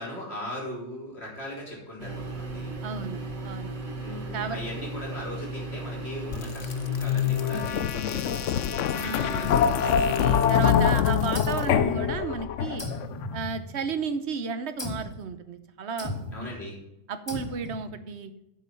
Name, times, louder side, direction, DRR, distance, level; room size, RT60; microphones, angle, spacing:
voice 1, 0.0-2.7 4.0-10.8 16.3-16.8, left 1 dB, 35° left, -3 dB, 4.0 m, -39 dB
sound 1, 2.0-7.7, right 2 dB, 70° right, 2.6 m, -36 dB
voice 2, 2.8-3.7 4.3-4.6 8.9-12.8 13.3-16.5 17.1-18.3, right 5 dB, 50° right, 10 dB, 0.9 m, -33 dB
sound 2, 6.3-13.1, left 8 dB, 70° left, 0.7 m, -25 dB
sound 3, 11.3-12.4 12.8-14.1 14.8-15.2 16.0-16.5 17.3-17.9, left 1 dB, 15° left, 1.4 m, -36 dB
9.3 x 7.4 x 5.6 m, 0.86 s
omnidirectional pair, 1.9 m